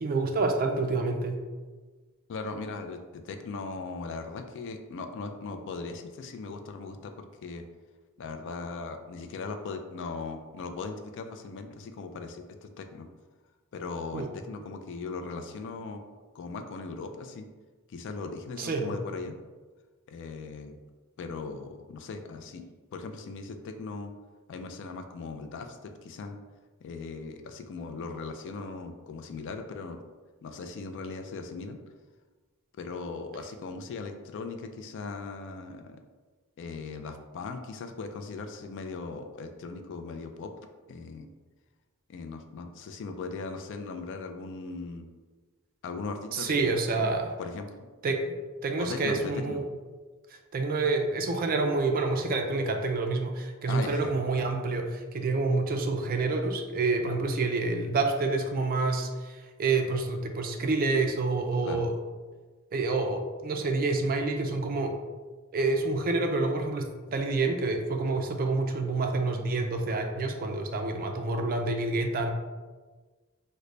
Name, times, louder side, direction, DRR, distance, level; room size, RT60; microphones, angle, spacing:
voice 1, 0.0-1.4 14.1-14.3 18.6-18.9 46.3-47.3 48.0-48.4 48.6-49.7 50.3-61.9 62.7-64.9 65.5-72.3, right 3 dB, 40° right, 4 dB, 0.4 m, -28 dB
voice 2, 2.3-7.6 8.2-13.1 13.7-16.0 16.3-17.4 17.9-19.4 20.1-20.8 21.2-22.6 22.9-24.1 24.5-26.4 26.8-30.0 30.4-31.8 32.8-36.0 36.6-40.5 40.9-41.3 42.1-45.1 45.8-47.1 47.4-47.7 48.8-49.6 53.7-54.1 61.6-61.8, left 4 dB, 55° left, 6 dB, 0.3 m, -38 dB
3.7 x 2.1 x 3.1 m, 1.3 s
head